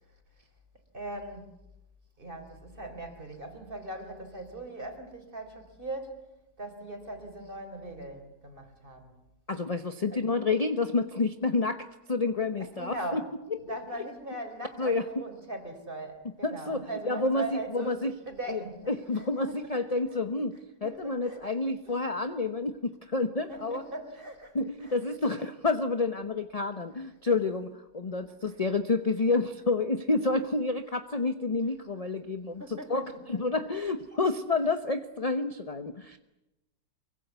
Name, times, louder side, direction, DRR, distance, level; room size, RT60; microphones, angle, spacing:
voice 1, 0.9-1.5 2.2-6.3 6.6-9.2 10.1-10.2 12.6-13.3 13.6-19.7 20.1-20.2 20.8-21.5 21.9-22.0 22.3-22.4 23.5-25.0 28.4-28.6 32.6-33.6, right 1 dB, 30° right, 6 dB, 4.0 m, -40 dB
voice 2, 9.5-13.2 14.8-15.0 16.4-18.1 18.5-18.6 18.9-23.8 24.5-36.2, left 3 dB, 30° left, 9 dB, 0.8 m, -29 dB
24.5 x 23.5 x 8.2 m, 0.92 s
omnidirectional pair, 1.9 m